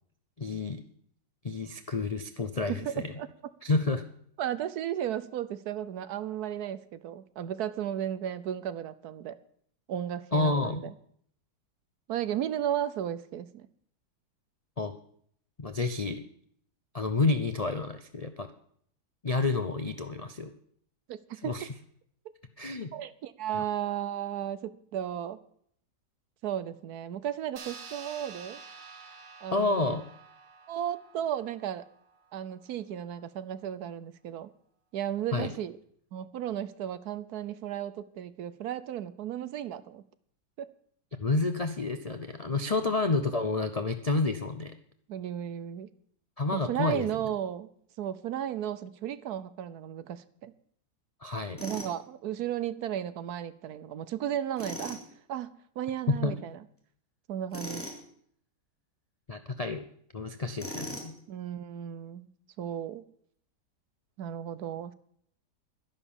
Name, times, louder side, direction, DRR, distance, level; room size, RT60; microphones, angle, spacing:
voice 1, 0.4-0.8 1.4-3.1 3.6-4.1 10.3-10.8 14.8-14.9 15.6-16.2 16.9-18.5 19.2-20.5 21.4-21.7 22.6-22.9 23.5-23.6 29.5-30.0 35.3-35.5 41.2-44.7 46.4-47.1 51.2-51.6 56.1-56.4 59.3-59.9 60.1-61.1, left 3 dB, 65° left, 8 dB, 0.3 m, -29 dB
voice 2, 2.7-3.3 4.4-9.4 9.9-10.9 12.1-13.7 21.1-21.5 22.9-25.4 26.4-28.6 29.4-30.0 30.7-31.9 32.3-34.5 34.9-35.8 36.1-40.0 40.6-40.7 42.8-42.9 45.1-45.9 46.5-47.7 48.0-50.5 51.6-55.0 55.3-56.6 57.3-57.9 61.3-62.3 62.6-63.0 64.2-64.9, right 10 dB, 70° right, 15 dB, 1.2 m, -34 dB
sound 1, 27.6-32.4, right 5 dB, 50° right, 1.3 m, -49 dB
Tools, 51.6-51.9 54.6-55.0 57.5-58.0 60.6-61.2, equal, 5° left, 2.9 m, -39 dB
12.0 x 10.5 x 7.1 m, 0.64 s
omnidirectional pair, 1.8 m